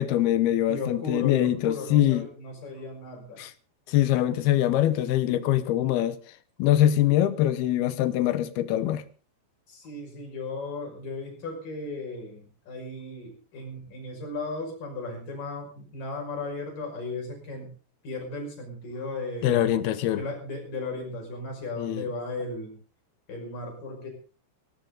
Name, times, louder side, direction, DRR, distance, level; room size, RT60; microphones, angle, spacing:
voice 1, 0.0-2.3 3.4-3.5 3.9-6.2 6.6-9.0 19.4-20.2 21.8-22.0, left 12 dB, 70° left, 2.7 m, -23 dB
voice 2, 0.7-3.4 9.7-17.7 18.0-19.7 20.2-22.8 23.3-24.1, left 2 dB, 50° left, 7.3 m, -36 dB
17.5 x 17.0 x 3.9 m
omnidirectional pair, 5.0 m